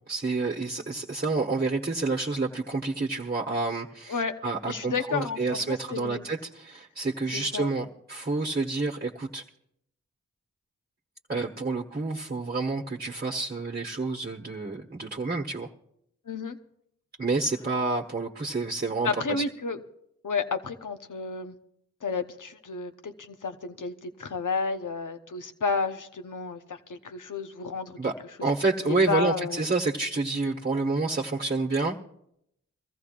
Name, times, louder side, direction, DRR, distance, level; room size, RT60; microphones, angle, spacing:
voice 1, 0.1-9.5 11.3-15.7 17.2-19.4 28.0-28.1 28.4-32.0, right 3 dB, 30° right, 1 dB, 1.2 m, -29 dB
voice 2, 4.6-6.2 7.3-7.7 16.3-16.6 19.0-19.8 20.2-21.6 22.0-28.0 28.8-29.6, left 4 dB, 75° left, 8 dB, 1.1 m, -31 dB
23.5 x 14.5 x 2.5 m, 0.75 s
cardioid pair, 40°, 31 cm